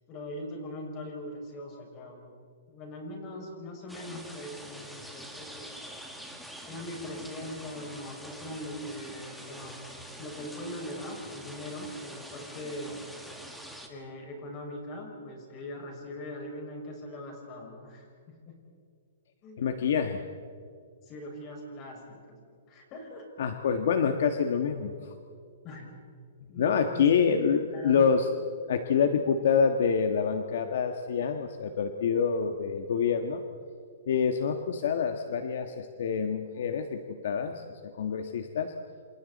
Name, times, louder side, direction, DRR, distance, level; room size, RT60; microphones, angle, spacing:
voice 1, 0.1-2.3 2.7-6.0 6.7-9.9 10.2-13.0 13.9-18.6 19.4-19.6 21.0-22.4 22.7-23.2 25.6-25.9 26.5-27.1 27.4-28.0, left 1 dB, 25° left, 0 dB, 6.1 m, -41 dB
sound 1, 3.9-13.9, equal, ahead, 1.9 m, -45 dB
voice 2, 19.6-20.3 23.4-25.1 26.6-28.3 28.7-33.4 34.1-38.7, left 6 dB, 60° left, 7 dB, 1.5 m, -27 dB
28.5 x 27.5 x 4.2 m, 2.3 s
hypercardioid pair, 160°, 0 cm